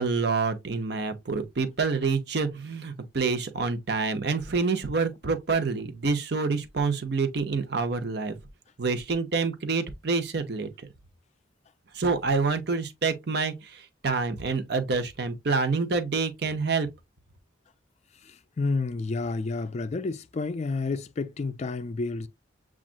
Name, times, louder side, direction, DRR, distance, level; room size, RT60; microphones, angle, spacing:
voice 1, 0.0-8.4 8.8-10.7 11.9-16.9, right 4 dB, 60° right, 0.8 m, -27 dB
voice 2, 18.6-22.3, left 3 dB, 35° left, 0.4 m, -30 dB
7.2 x 2.5 x 2.5 m
head